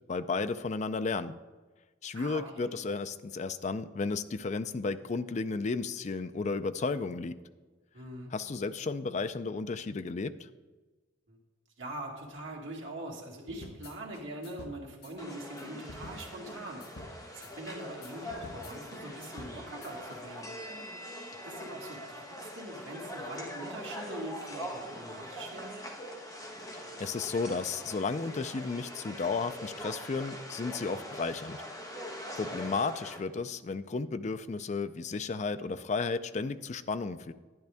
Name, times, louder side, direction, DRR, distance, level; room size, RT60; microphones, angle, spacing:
voice 1, 0.1-1.4 2.0-7.4 8.3-10.3 27.0-31.6 32.4-37.3, left 4 dB, 35° left, 12 dB, 0.4 m, -33 dB
voice 2, 2.1-2.7 7.9-8.3 11.3-11.4 11.8-20.6 21.4-25.8 32.4-32.7, right 1 dB, 75° right, -1 dB, 2.1 m, -43 dB
sound 1, 13.5-20.2, left 2 dB, 55° left, 0.9 m, -49 dB
sound 2, 15.2-33.2, equal, 20° left, 1.3 m, -43 dB
10.5 x 10.0 x 3.5 m, 1.3 s
head